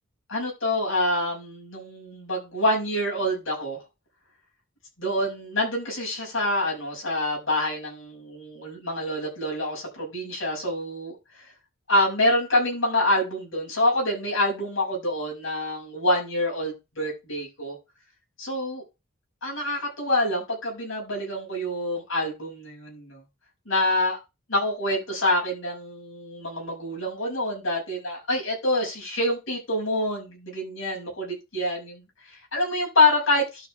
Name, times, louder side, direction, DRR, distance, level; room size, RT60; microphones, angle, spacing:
voice 1, 0.3-3.8 5.0-11.2 11.9-17.8 18.4-18.8 19.4-23.2 23.7-24.2 24.5-33.7, left 1 dB, 70° left, -2 dB, 6.3 m, -26 dB
12.5 x 5.9 x 3.4 m, 0.25 s
head